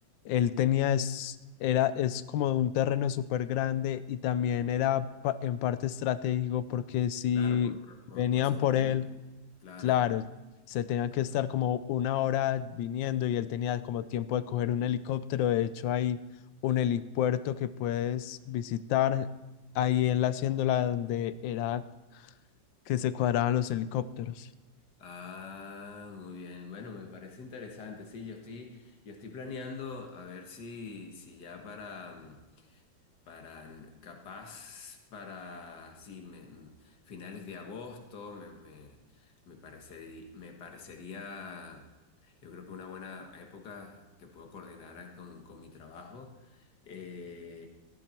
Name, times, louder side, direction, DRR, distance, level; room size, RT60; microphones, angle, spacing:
voice 1, 0.2-7.8 8.2-9.0 9.8-10.3 10.7-16.2 16.6-19.3 19.7-21.8 22.1-22.3 22.9-24.5, left 11 dB, 80° left, 15 dB, 1.3 m, -29 dB
voice 2, 4.4-4.7 7.3-9.0 9.6-10.0 11.2-11.5 25.0-32.8 33.3-41.9 42.2-47.7, left 4 dB, 60° left, 3 dB, 2.1 m, -45 dB
14.5 x 11.5 x 4.4 m, 1.1 s
omnidirectional pair, 2.0 m